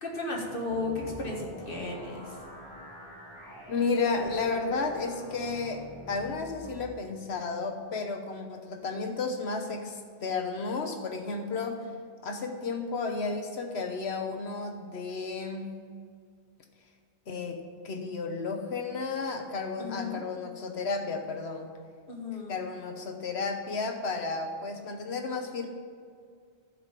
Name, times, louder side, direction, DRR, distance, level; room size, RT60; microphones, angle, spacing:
voice 1, 0.0-2.2 19.8-20.2 22.1-22.5, left 3 dB, 50° left, -1 dB, 1.8 m, -34 dB
sound 1, 0.6-6.9, left 1 dB, 25° left, 3.0 m, -45 dB
voice 2, 3.7-11.9 12.2-15.7 17.3-21.7 22.5-25.7, left 4 dB, 65° left, 5 dB, 1.3 m, -32 dB
11.5 x 5.3 x 7.4 m, 2.1 s
omnidirectional pair, 1.2 m